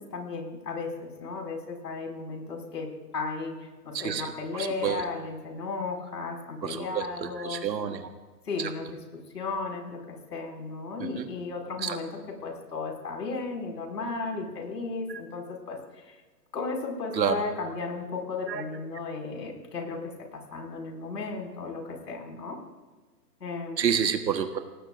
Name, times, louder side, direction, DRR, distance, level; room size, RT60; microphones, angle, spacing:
voice 1, 0.0-7.6 8.4-16.2 16.5-22.6 23.4-24.0, left 4 dB, 80° left, 1 dB, 5.8 m, -35 dB
voice 2, 3.9-5.0 6.6-8.1 11.2-11.3 11.8-12.0 17.1-17.4 18.5-18.6 23.8-24.6, right 8 dB, 90° right, 7 dB, 1.5 m, -29 dB
25.0 x 18.5 x 2.6 m, 1.3 s
hypercardioid pair, 165°, 49 cm